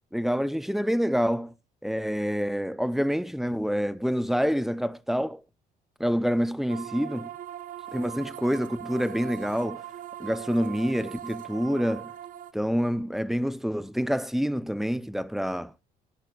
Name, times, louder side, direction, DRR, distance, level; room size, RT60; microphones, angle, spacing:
voice 1, 0.1-1.5 1.8-5.4 6.0-7.3 7.9-9.8 10.2-12.1 12.5-15.7, equal, ahead, 0.5 m, -27 dB
sound 1, 6.7-12.5, right 11 dB, 55° right, 0.9 m, -40 dB
17.5 x 10.5 x 2.3 m
cardioid pair, 110°, 17 cm